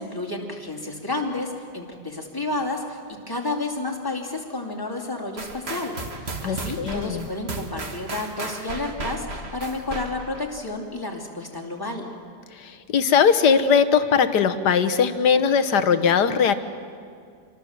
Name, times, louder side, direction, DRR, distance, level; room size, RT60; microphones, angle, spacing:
voice 1, 0.0-12.1, left 2 dB, 10° left, 1 dB, 2.8 m, -31 dB
sound 1, 5.4-10.5, right 3 dB, 40° right, 1.8 m, -34 dB
voice 2, 6.4-7.3 12.6-16.5, left 6 dB, 70° left, 9 dB, 1.7 m, -20 dB
28.0 x 23.0 x 7.4 m, 2.2 s
omnidirectional pair, 1.9 m